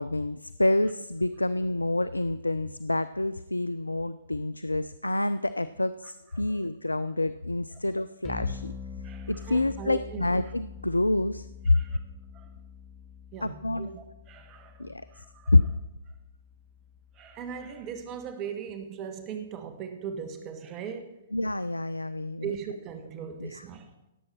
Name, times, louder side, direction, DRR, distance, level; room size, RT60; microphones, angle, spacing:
voice 1, 0.0-8.7 9.3-11.8 13.4-14.0 14.8-15.0 15.5-15.6 21.3-22.5 23.4-23.6, left 2 dB, 90° left, 15 dB, 0.3 m, -27 dB
sound 1, 8.2-18.3, left 5 dB, 15° left, 1.4 m, -45 dB
voice 2, 9.0-10.5 11.6-12.0 12.3-12.5 13.3-15.5 17.2-21.2 22.4-23.9, right 7 dB, 30° right, 7 dB, 1.3 m, -39 dB
16.5 x 7.7 x 4.4 m, 0.92 s
figure-of-eight pair, 120°, 0 cm